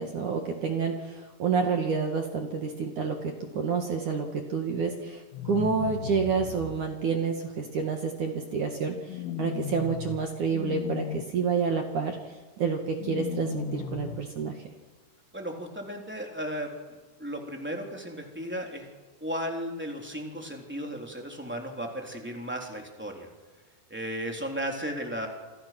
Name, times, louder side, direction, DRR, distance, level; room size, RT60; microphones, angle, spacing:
voice 1, 0.0-14.6, right 5 dB, 55° right, 3 dB, 2.5 m, -29 dB
sound 1, 5.3-6.7 9.1-10.2 10.5-11.2 13.0-14.2, left 8 dB, 75° left, 3.9 m, -35 dB
voice 2, 15.3-16.7 17.2-18.9 19.2-23.3 23.9-25.3, equal, 5° right, 1 dB, 2.5 m, -35 dB
28.0 x 28.0 x 6.1 m, 1.4 s
omnidirectional pair, 5.8 m